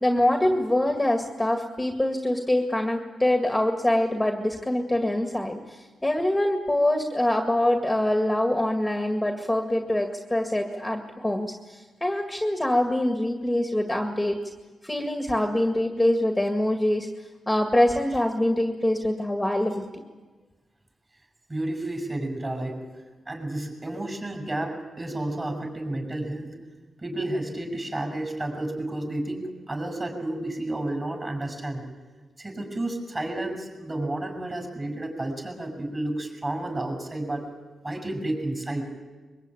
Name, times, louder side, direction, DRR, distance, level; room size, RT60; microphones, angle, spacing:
voice 1, 0.0-14.4 14.8-17.1 17.5-20.0, left 1 dB, 10° left, 4 dB, 2.0 m, -24 dB
voice 2, 21.5-22.8 23.2-26.6 27.0-31.8 32.4-37.5 37.8-38.9, right 1 dB, 25° right, 4 dB, 6.7 m, -31 dB
23.0 x 23.0 x 9.2 m, 1.3 s
cardioid pair, 105°, 0 cm